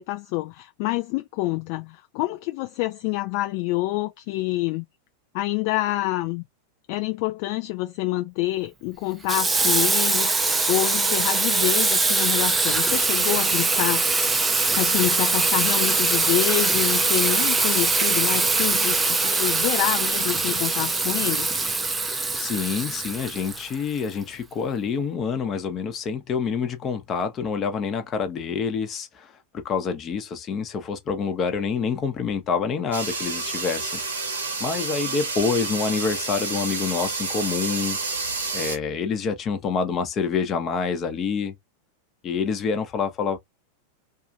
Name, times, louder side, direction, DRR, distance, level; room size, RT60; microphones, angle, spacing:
voice 1, 0.0-4.8 5.3-6.4 6.9-10.3 10.7-14.2 14.7-21.5, left 18 dB, 45° left, 0.4 m, -27 dB
Water tap faucet / Sink (filling or washing), 9.3-24.0, right 3 dB, 15° right, 0.5 m, -22 dB
voice 2, 22.3-34.2 34.6-38.0 38.5-41.5 42.2-43.4, left 5 dB, 30° left, 0.8 m, -27 dB
sound 1, 32.9-38.8, right 3 dB, 70° right, 0.9 m, -29 dB
2.7 x 2.5 x 2.5 m
figure-of-eight pair, 90°, 0 cm